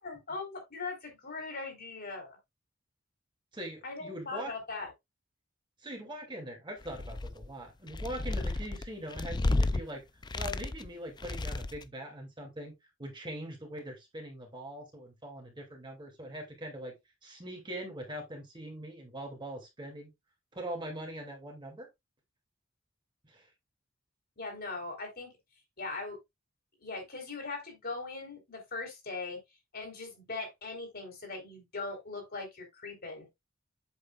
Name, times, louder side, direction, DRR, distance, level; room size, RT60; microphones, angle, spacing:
voice 1, 0.0-2.4 3.8-4.9 24.4-25.4 25.8-26.2 26.8-29.4 29.7-33.3, left 3 dB, 50° left, 3.8 m, -40 dB
voice 2, 3.5-4.5 5.8-10.1 10.3-12.7 13.0-16.9 17.2-20.1 20.5-21.9 23.2-23.5, right 1 dB, 25° right, 2.5 m, -42 dB
sound 1, 6.8-7.5 7.9-9.8 10.2-10.9 11.2-11.9, left 2 dB, 20° left, 0.4 m, -32 dB
8.2 x 7.3 x 2.4 m
head